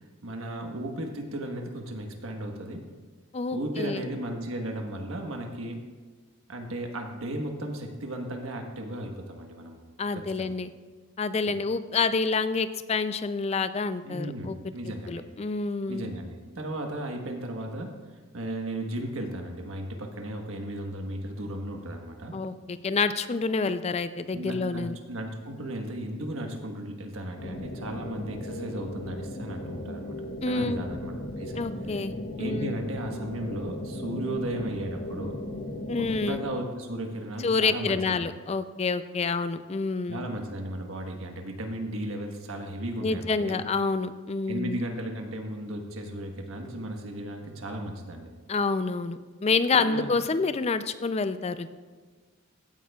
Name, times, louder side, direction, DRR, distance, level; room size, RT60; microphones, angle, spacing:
voice 1, 0.2-2.9 3.5-5.9 6.5-9.8 10.1-10.5 11.5-11.6 14.0-15.3 15.9-17.9 18.3-22.3 24.3-30.2 30.4-31.6 32.4-35.4 35.9-38.2 40.1-43.6 44.5-48.3 49.8-50.1, right 1 dB, 80° right, 3 dB, 1.3 m, -35 dB
voice 2, 3.3-4.1 10.0-10.7 11.2-14.6 15.1-16.1 22.3-25.0 30.4-30.8 31.6-32.7 35.9-36.4 37.4-40.3 43.0-44.8 48.5-51.7, left 4 dB, 30° left, 12 dB, 0.4 m, -28 dB
sound 1, 27.4-36.5, left 1 dB, 50° left, 0.9 m, -37 dB
15.5 x 9.4 x 2.3 m, 1.4 s
head